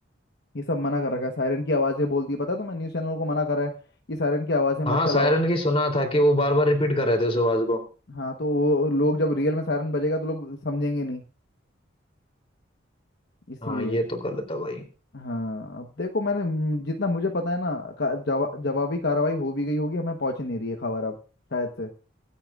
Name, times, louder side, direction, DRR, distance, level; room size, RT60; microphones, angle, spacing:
voice 1, 0.5-3.7 4.1-5.3 8.1-11.2 13.5-14.0 15.1-21.2 21.5-21.9, left 2 dB, 60° left, 3 dB, 1.1 m, -26 dB
voice 2, 4.9-7.8 13.6-14.8, left 1 dB, 30° left, 4 dB, 3.1 m, -23 dB
25.5 x 8.7 x 2.4 m, 0.35 s
head